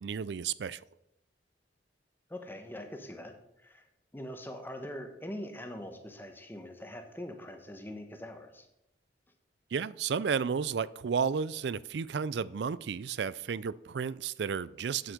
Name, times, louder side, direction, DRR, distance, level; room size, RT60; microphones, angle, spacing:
voice 1, 0.0-0.8 9.7-15.1, right 6 dB, 70° right, 19 dB, 0.4 m, -32 dB
voice 2, 2.3-3.9 4.1-8.7, left 1 dB, 10° left, 5 dB, 1.2 m, -43 dB
9.1 x 7.8 x 5.1 m, 0.84 s
head